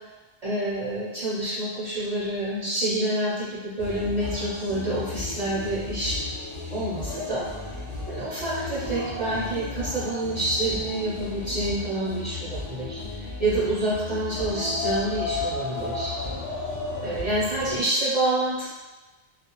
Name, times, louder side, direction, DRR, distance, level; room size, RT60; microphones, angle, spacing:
voice 1, 0.4-6.2 6.7-7.5 8.1-16.1 17.0-18.7, right 1 dB, 45° right, -9 dB, 0.5 m, -27 dB
sound 1, 3.8-17.8, left 3 dB, 40° left, 0.4 m, -34 dB
2.3 x 2.1 x 2.8 m, 1.1 s
omnidirectional pair, 1.2 m